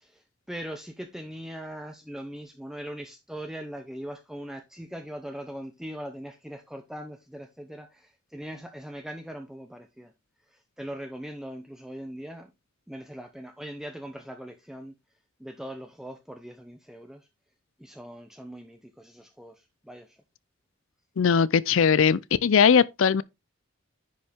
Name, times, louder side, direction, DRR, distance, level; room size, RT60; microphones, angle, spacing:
voice 1, 0.0-10.1 10.5-12.5 12.9-14.9 15.4-17.3 17.8-20.2, equal, 5° right, 0.7 m, -40 dB
voice 2, 21.2-23.2, left 6 dB, 70° left, 0.5 m, -20 dB
10.0 x 5.3 x 3.5 m
head